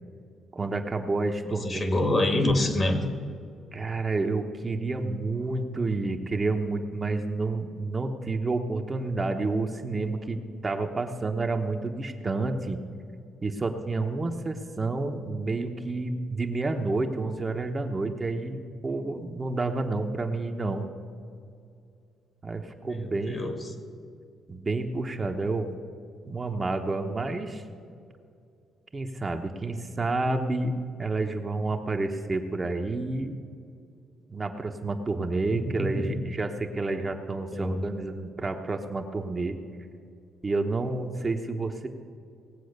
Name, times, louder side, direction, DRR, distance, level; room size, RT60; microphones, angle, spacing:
voice 1, 0.5-1.9 3.7-12.8 13.4-20.8 22.4-23.5 24.5-25.7 26.3-27.6 28.9-33.3 34.3-39.6 40.4-41.9, right 3 dB, 30° right, 4 dB, 1.1 m, -29 dB
voice 2, 1.4-3.1 22.8-23.7 35.5-36.2 37.5-37.9, left 1 dB, 35° left, 7 dB, 1.9 m, -27 dB
19.0 x 7.6 x 6.6 m, 2.4 s
cardioid pair, 90°, 0 cm